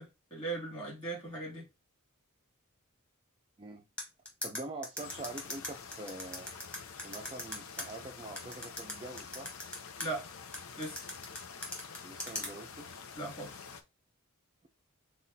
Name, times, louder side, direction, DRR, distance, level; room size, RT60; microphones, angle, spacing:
voice 1, 0.0-1.7 10.0-10.3 10.8-11.1 13.1-13.5, right 2 dB, 25° left, 2.4 m, -39 dB
sound 1, 4.0-7.8 8.4-10.1 10.5-12.5, left 1 dB, 5° left, 1.2 m, -39 dB
voice 2, 4.4-6.5 7.0-9.5 12.0-13.0, right 2 dB, 20° right, 0.4 m, -45 dB
sound 2, 5.0-13.8, left 6 dB, 70° left, 0.6 m, -48 dB
5.6 x 2.4 x 2.7 m
head